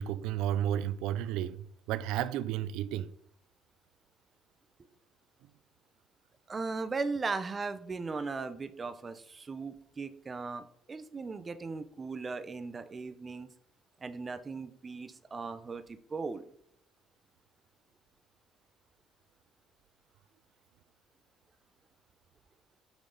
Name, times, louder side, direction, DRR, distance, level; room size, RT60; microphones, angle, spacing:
voice 1, 0.0-3.1, right 11 dB, 85° right, 0.4 m, -32 dB
voice 2, 6.5-13.5 14.0-16.4, right 4 dB, 20° right, 0.6 m, -38 dB
6.5 x 6.3 x 3.8 m
cardioid pair, 145°, 0 cm